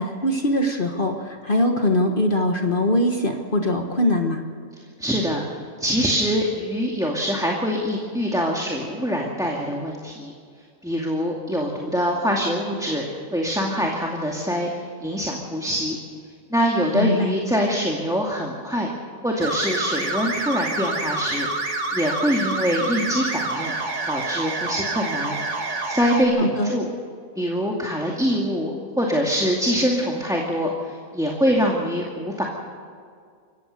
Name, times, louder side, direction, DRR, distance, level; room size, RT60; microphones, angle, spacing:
voice 1, 0.0-4.4 16.9-17.3 26.4-26.7, left 1 dB, 40° left, 3 dB, 1.6 m, -22 dB
voice 2, 5.0-5.5 5.8-10.3 10.8-13.1 13.3-16.0 16.5-18.9 19.2-21.5 21.9-23.8 24.1-25.4 25.9-26.8 27.4-32.5, equal, ahead, -1 dB, 2.3 m, -24 dB
sound 1, 19.4-26.2, right 2 dB, 55° right, 2.5 m, -27 dB
27.0 x 15.0 x 6.7 m, 2.1 s
omnidirectional pair, 1.5 m